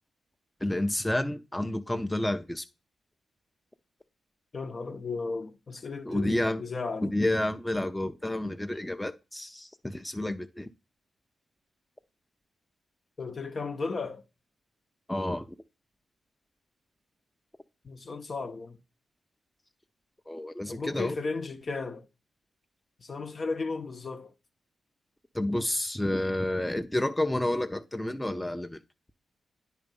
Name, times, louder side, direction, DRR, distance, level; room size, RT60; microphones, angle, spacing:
voice 1, 0.6-2.6 6.1-6.6 7.0-10.7 15.1-15.4 20.3-21.2 25.3-28.8, left 1 dB, 10° left, 0.6 m, -30 dB
voice 2, 4.5-7.2 13.2-14.2 17.8-18.8 20.7-22.1 23.0-24.3, left 4 dB, 50° left, 0.9 m, -35 dB
9.4 x 3.1 x 5.3 m
supercardioid pair, 45°, 0 cm